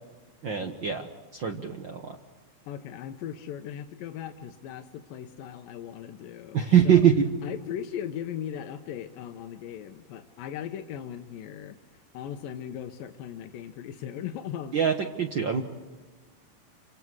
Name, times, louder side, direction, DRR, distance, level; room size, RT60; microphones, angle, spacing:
voice 1, 0.4-2.2 6.5-7.3 14.7-15.6, right 8 dB, 70° right, 3 dB, 1.1 m, -23 dB
voice 2, 2.7-7.1 7.4-15.0, left 9 dB, 90° left, 6 dB, 2.6 m, -38 dB
29.0 x 26.0 x 4.7 m, 1.4 s
omnidirectional pair, 3.9 m